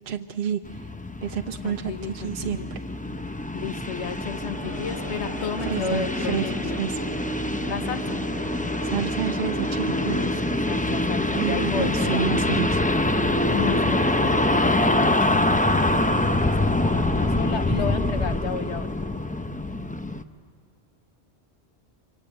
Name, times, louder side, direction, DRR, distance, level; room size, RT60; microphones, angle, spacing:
voice 1, 0.1-0.9 1.2-2.8 5.6-7.1 8.8-10.3 11.3-12.8, right 8 dB, 55° right, 5 dB, 1.0 m, -29 dB
sound 1, 0.6-20.2, left 1 dB, 10° left, 0.5 m, -25 dB
voice 2, 1.6-2.7 3.5-6.9 7.7-8.2 10.1-12.2 13.5-18.9, left 6 dB, 80° left, 10 dB, 1.3 m, -33 dB
sound 2, 4.1-11.0, equal, 30° left, 3.7 m, -39 dB
26.5 x 24.5 x 7.9 m, 2.5 s
omnidirectional pair, 1.2 m